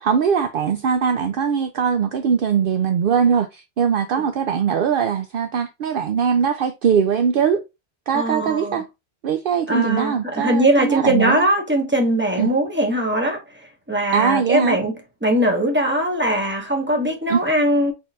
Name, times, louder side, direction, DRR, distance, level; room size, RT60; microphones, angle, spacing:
voice 1, 0.0-7.6 8.1-8.9 9.2-11.4 12.4-12.5 14.1-14.8 17.3-17.4, right 7 dB, 65° right, 0.7 m, -21 dB
voice 2, 8.1-8.8 9.7-13.4 13.9-14.9 15.2-17.9, right 1 dB, 10° right, 1.4 m, -20 dB
4.7 x 4.2 x 2.4 m
omnidirectional pair, 1.1 m